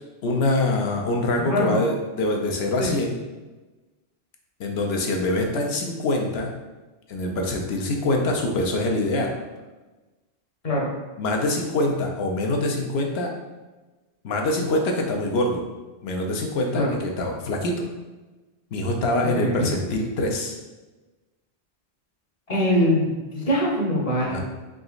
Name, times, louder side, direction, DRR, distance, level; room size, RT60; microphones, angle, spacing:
voice 1, 0.2-3.2 4.6-6.5 7.1-9.3 11.2-13.3 14.2-15.6 16.0-17.8 18.7-20.6 24.3-24.4, left 1 dB, 70° left, 2 dB, 0.9 m, -24 dB
voice 2, 1.5-1.8 2.8-2.9 10.6-10.9 16.7-17.0 19.2-19.8 22.5-24.4, equal, 35° left, -3 dB, 0.9 m, -23 dB
3.8 x 3.8 x 2.4 m, 1.2 s
omnidirectional pair, 1.1 m